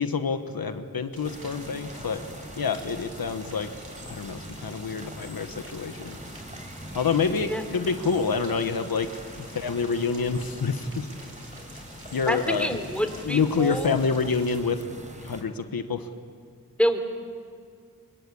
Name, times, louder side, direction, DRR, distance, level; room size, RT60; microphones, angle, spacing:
voice 1, 0.0-2.2 2.6-3.7 4.1-6.2 6.9-9.1 9.5-11.1 12.1-12.8 13.2-14.8 15.2-16.1, left 5 dB, 85° left, 8 dB, 1.3 m, -27 dB
Rain, 1.1-14.6, right 1 dB, 40° right, 4.8 m, -48 dB
sound 1, 1.2-15.4, equal, 20° right, 4.5 m, -43 dB
voice 2, 12.3-13.9 16.8-17.0, equal, 5° left, 7 dB, 3.4 m, -27 dB
26.0 x 22.5 x 8.7 m, 2.2 s
cardioid pair, 50°, 35 cm